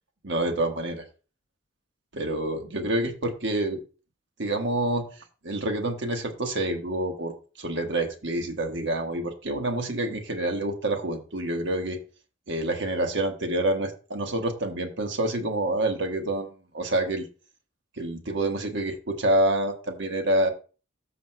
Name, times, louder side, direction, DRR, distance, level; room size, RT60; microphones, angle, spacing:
voice 1, 0.2-1.0 2.1-3.8 4.4-5.0 5.4-12.0 12.5-17.3 18.0-20.5, right 1 dB, 60° right, 4 dB, 1.3 m, -27 dB
13.5 x 6.2 x 2.2 m, 0.35 s
head